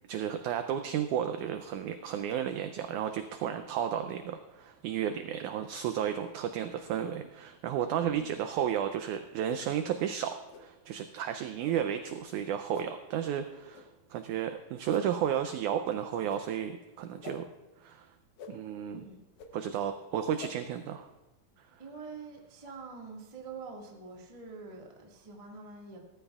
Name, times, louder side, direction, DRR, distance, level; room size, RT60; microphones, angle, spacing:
voice 1, 0.1-17.5 17.8-18.1 18.5-19.0 19.5-21.1, right 9 dB, 90° right, 8 dB, 1.7 m, -33 dB
sound 1, 10.5-10.7 11.6-11.8 12.7-12.9 13.7-13.8 14.9-15.1 16.3-16.4 17.2-17.4 18.4-18.5 19.4-19.5 20.4-20.5, left 6 dB, 70° left, 1.9 m, -46 dB
voice 2, 21.8-26.0, right 4 dB, 50° right, -1 dB, 0.4 m, -46 dB
17.5 x 14.0 x 2.4 m, 1.1 s
omnidirectional pair, 4.1 m